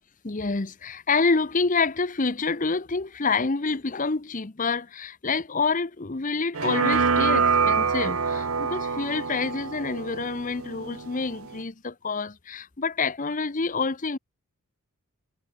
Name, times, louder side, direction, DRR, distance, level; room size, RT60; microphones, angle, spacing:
voice 1, 0.2-14.2, left 4 dB, 35° left, 0.9 m, -27 dB
sound 1, 6.5-11.6, right 5 dB, 75° right, 1.2 m, -25 dB
head